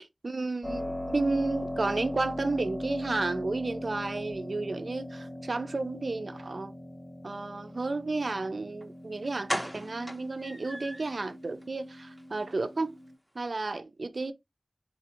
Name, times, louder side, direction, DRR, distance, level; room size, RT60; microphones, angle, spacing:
voice 1, 0.2-6.7 7.2-13.0 13.4-14.3, right 3 dB, 70° right, 0.4 m, -32 dB
Keyboard (musical), 0.6-13.1, left 1 dB, 40° left, 1.2 m, -40 dB
sound 1, 8.8-8.9 9.5-11.2 11.6-11.7 12.1-12.2 12.5-12.6, equal, ahead, 0.7 m, -36 dB
4.0 x 2.4 x 2.9 m
wide cardioid pair, 45°, 0 cm